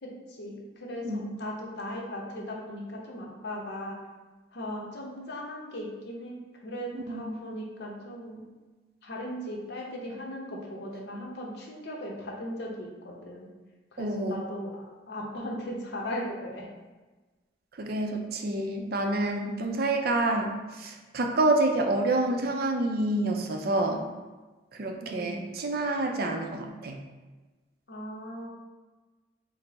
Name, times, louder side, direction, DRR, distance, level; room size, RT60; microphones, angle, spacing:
voice 1, 0.0-4.0 4.5-8.4 9.0-13.5 13.9-16.7 25.0-25.4 27.9-28.5, equal, 65° left, -2 dB, 0.8 m, -38 dB
voice 2, 6.9-7.5 14.0-14.5 17.8-24.1 24.7-27.0, right 2 dB, 55° right, 3 dB, 0.4 m, -28 dB
4.3 x 2.0 x 4.0 m, 1.2 s
head